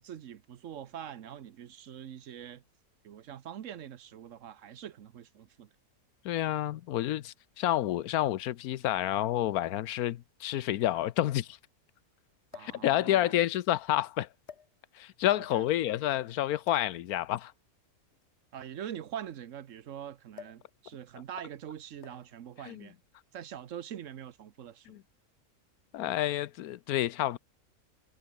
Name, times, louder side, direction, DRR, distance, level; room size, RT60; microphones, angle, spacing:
voice 1, 0.0-2.6 3.0-5.7 12.5-13.3 15.3-15.6 18.5-23.0 23.3-25.0, right 9 dB, 60° right, 1.2 m, -44 dB
voice 2, 6.2-11.6 12.6-14.3 14.9-17.5 22.6-22.9 24.9-25.0 25.9-27.4, left 13 dB, 85° left, 1.2 m, -29 dB
sound 1, 8.8-8.9 9.9-10.0 10.3-10.4 12.5-12.9 13.7-13.9 14.4-15.1 16.6-17.0 18.1-19.7 20.3-20.7 21.0-21.3 22.0-22.4 23.4-23.6, left 7 dB, 50° left, 1.3 m, -51 dB
omnidirectional pair, 1.5 m